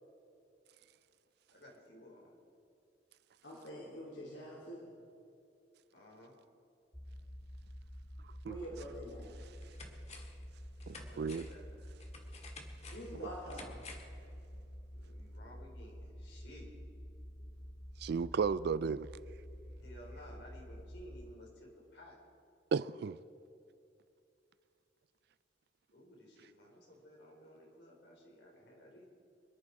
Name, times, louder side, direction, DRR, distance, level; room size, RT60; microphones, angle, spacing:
voice 1, 1.5-2.3 5.9-6.3 11.0-11.8 14.9-16.7 19.8-22.2 25.9-29.1, equal, 65° left, 4.5 m, -55 dB
voice 2, 3.4-4.9 8.4-9.3 12.9-13.8, equal, 90° left, 3.8 m, -46 dB
sound 1, 6.9-21.3, equal, ahead, 0.5 m, -49 dB
sound 2, 8.8-8.9 9.4-10.4 10.8-14.2 14.5-14.6, left 3 dB, 40° left, 1.9 m, -53 dB
voice 3, 10.9-11.5 18.0-19.1 22.7-23.2, right 5 dB, 60° right, 0.4 m, -34 dB
26.5 x 10.5 x 4.9 m
head